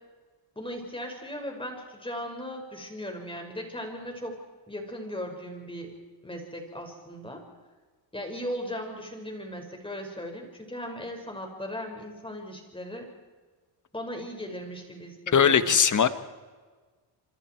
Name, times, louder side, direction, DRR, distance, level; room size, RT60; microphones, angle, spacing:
voice 1, 0.6-4.4 4.7-5.9 6.2-7.4 8.1-13.1 13.9-15.7, equal, 10° left, 3 dB, 5.5 m, -37 dB
voice 2, 15.3-16.1, left 7 dB, 35° left, 12 dB, 1.5 m, -20 dB
26.5 x 26.0 x 4.6 m, 1.4 s
cardioid pair, 110°, 50 cm